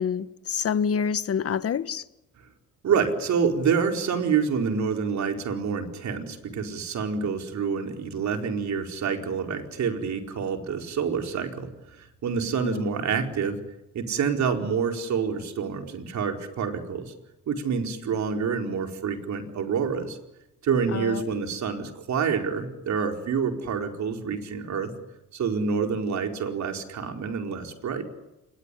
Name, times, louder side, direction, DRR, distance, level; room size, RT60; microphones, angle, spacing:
voice 1, 0.0-2.0 12.6-13.0 20.9-21.3, left 7 dB, 50° left, 1.4 m, -27 dB
voice 2, 2.8-11.7 12.0-13.6 13.9-17.1 17.5-20.2 20.6-24.9 25.3-28.1, right 6 dB, 65° right, 4.5 m, -27 dB
27.5 x 22.0 x 9.9 m
cardioid pair, 90°, 30 cm